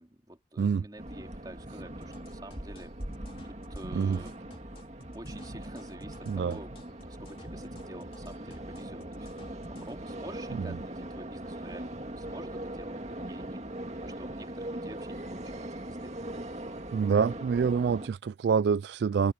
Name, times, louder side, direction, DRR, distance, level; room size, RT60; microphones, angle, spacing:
voice 1, 0.0-2.9 3.4-4.3 5.1-9.3 9.7-13.6 14.0-16.2, right 1 dB, 20° right, 3.3 m, -48 dB
sound 1, 1.0-18.1, right 1 dB, 40° right, 2.2 m, -40 dB
sound 2, 2.0-9.9, left 1 dB, 30° left, 2.9 m, -51 dB
voice 2, 16.9-19.3, right 6 dB, 65° right, 0.3 m, -26 dB
head